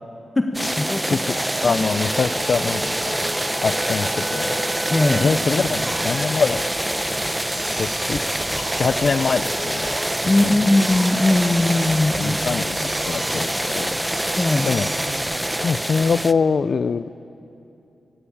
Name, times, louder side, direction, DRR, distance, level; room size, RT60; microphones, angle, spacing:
voice 1, 0.4-1.2 1.6-1.8 4.9-5.3 10.2-12.4 14.4-14.7, left 2 dB, 25° left, 3 dB, 1.7 m, -20 dB
sound 1, 0.5-16.3, right 1 dB, 10° right, 0.9 m, -25 dB
Drill, 1.3-16.6, right 1 dB, 30° right, 4.7 m, -34 dB
voice 2, 1.6-3.2 3.6-4.6 5.1-6.6 7.8-8.2 8.6-10.0 10.4-10.7 11.9-14.2 14.6-14.9 15.6-17.1, left 5 dB, 60° left, 16 dB, 0.7 m, -24 dB
Wind instrument woodwind instrument, 2.9-6.9, right 3 dB, 65° right, 2.5 m, -37 dB
26.0 x 26.0 x 8.7 m, 2.9 s
cardioid pair, 75°, 0 cm